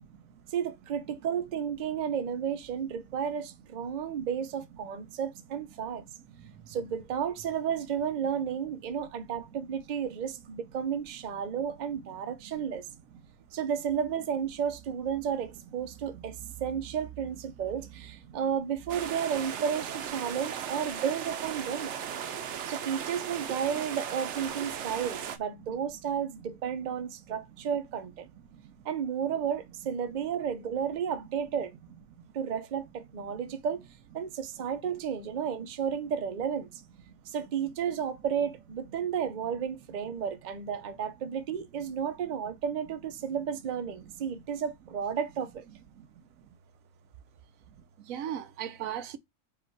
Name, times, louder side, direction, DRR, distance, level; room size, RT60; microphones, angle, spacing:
voice 1, 0.5-6.0 6.6-12.8 13.5-21.9 22.7-28.3 28.8-31.7 32.3-33.8 34.1-36.8 37.3-45.7, right 8 dB, 45° right, 0.6 m, -32 dB
voice 2, 16.1-16.5 18.3-18.4 22.3-22.5 24.8-24.9 28.5-28.7 37.1-37.2 46.0-46.1 48.1-49.2, right 10 dB, 85° right, 1.1 m, -39 dB
sound 1, 18.9-25.4, right 8 dB, 65° right, 0.9 m, -37 dB
4.9 x 2.5 x 4.4 m
omnidirectional pair, 1.4 m